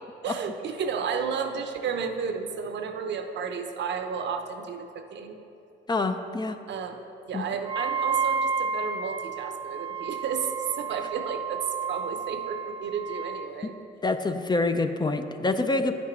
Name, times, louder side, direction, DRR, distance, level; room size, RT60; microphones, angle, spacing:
voice 1, 0.2-5.4 6.7-7.0 7.3-13.7, right 6 dB, 65° right, 6 dB, 0.7 m, -32 dB
voice 2, 5.9-6.6 7.3-7.4 14.0-15.9, left 2 dB, 20° left, 8 dB, 0.4 m, -26 dB
Wind instrument woodwind instrument, 7.6-13.5, right 5 dB, 20° right, 0.6 m, -31 dB
9.4 x 6.1 x 4.4 m, 2.8 s
cardioid pair, 90°, 20 cm